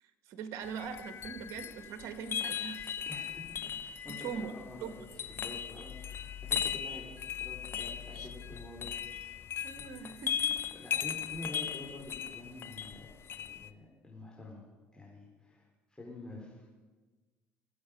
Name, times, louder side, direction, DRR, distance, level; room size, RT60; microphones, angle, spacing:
voice 1, 0.3-3.0 4.1-4.5 4.8-4.9 8.1-8.3 9.6-10.7, right 7 dB, 70° right, 9 dB, 1.7 m, -42 dB
sound 1, 0.6-13.7, left 8 dB, 50° left, 0.8 m, -38 dB
voice 2, 3.1-9.4 9.8-10.0 10.7-14.6 14.9-16.8, left 1 dB, 15° left, -4 dB, 4.5 m, -48 dB
25.0 x 8.7 x 5.3 m, 1.3 s
supercardioid pair, 75°, 5 cm